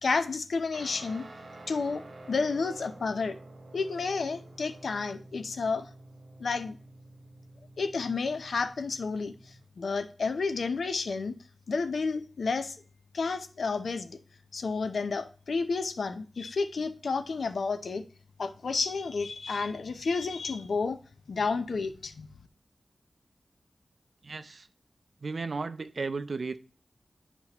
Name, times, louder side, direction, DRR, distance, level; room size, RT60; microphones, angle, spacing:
voice 1, 0.0-1.2 1.7-3.4 3.7-5.9 6.4-6.8 7.8-11.4 11.7-12.8 13.1-14.2 14.5-18.0 18.4-21.0 21.3-22.3, left 4 dB, 80° left, 0.6 m, -31 dB
Guitar, 0.7-9.7, right 2 dB, 85° right, 1.1 m, -50 dB
voice 2, 24.2-24.7 25.2-26.6, right 4 dB, 55° right, 0.4 m, -34 dB
10.5 x 4.3 x 2.9 m
wide cardioid pair, 110°, 0 cm